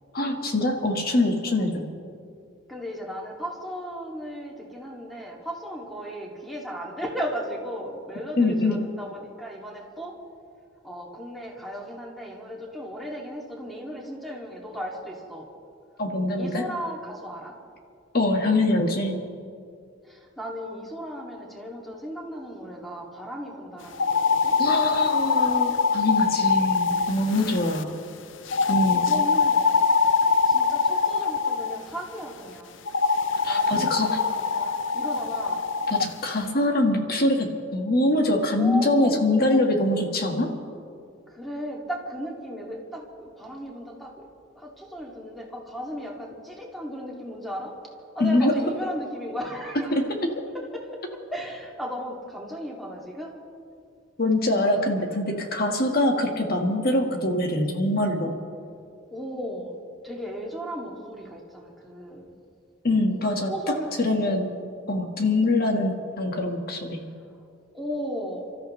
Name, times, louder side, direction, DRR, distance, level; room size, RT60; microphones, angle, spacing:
voice 1, 0.1-1.9 8.4-8.8 16.0-16.6 18.1-19.2 24.6-28.0 28.7-29.1 33.4-34.2 35.9-40.6 48.2-48.6 49.9-50.2 54.2-58.4 62.8-63.5 64.0-64.5 64.9-67.0, left 1 dB, 50° left, 2 dB, 1.7 m, -24 dB
voice 2, 2.7-10.1 10.8-15.5 16.4-17.5 20.0-24.9 28.8-29.8 30.5-32.7 33.4-35.6 38.6-39.7 41.3-44.3 44.5-47.7 48.1-50.0 50.7-50.9 51.3-53.4 54.6-54.7 55.0-55.6 59.1-59.7 60.0-62.3 63.5-63.9 64.2-64.4 67.7-68.5, equal, ahead, -2 dB, 2.5 m, -36 dB
sound 1, 23.9-27.8 28.5-31.8 32.9-36.1, left 5 dB, 75° left, 0.7 m, -23 dB
29.5 x 13.5 x 3.3 m, 2.3 s
head